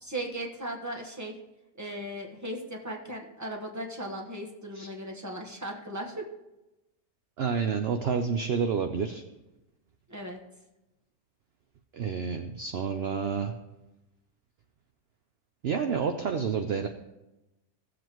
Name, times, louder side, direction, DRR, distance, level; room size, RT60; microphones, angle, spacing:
voice 1, 0.0-1.3 1.8-6.2 10.1-10.4, right 1 dB, 15° right, 0 dB, 1.2 m, -37 dB
voice 2, 7.4-9.2 11.9-13.5 15.6-16.9, right 6 dB, 60° right, 6 dB, 0.7 m, -29 dB
16.5 x 7.6 x 3.0 m, 0.97 s
omnidirectional pair, 1.6 m